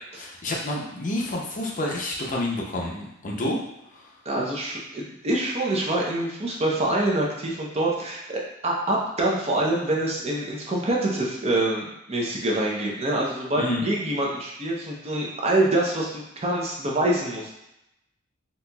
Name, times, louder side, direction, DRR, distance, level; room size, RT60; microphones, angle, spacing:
voice 1, 0.1-3.6 3.9-4.1 13.6-13.9, left 1 dB, 40° left, -1 dB, 0.6 m, -29 dB
voice 2, 4.2-17.5, right 1 dB, 30° right, -2 dB, 0.6 m, -25 dB
4.0 x 2.9 x 2.3 m, 0.84 s
head